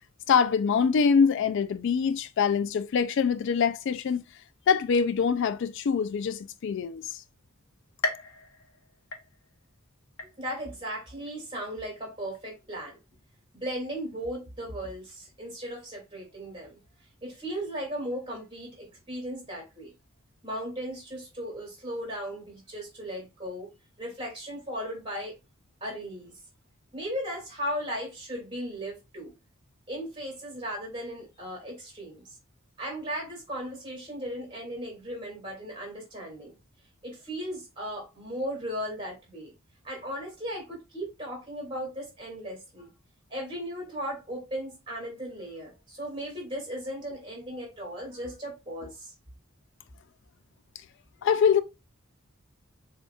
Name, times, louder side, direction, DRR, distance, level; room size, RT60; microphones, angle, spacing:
voice 1, 0.3-4.2 4.7-7.2 51.2-51.6, left 6 dB, 60° left, 0.3 m, -24 dB
sound 1, 8.0-9.7 10.2-10.8 11.3-11.4 12.3-12.4, left 3 dB, 80° left, 0.8 m, -36 dB
voice 2, 10.4-13.0 13.5-16.8 17.2-19.9 20.4-23.7 24.0-25.3 25.8-26.3 26.9-29.3 29.9-32.2 32.8-36.6 37.0-39.5 39.8-42.9 43.3-49.1, equal, 25° right, 2.4 m, -36 dB
7.0 x 2.8 x 2.3 m
head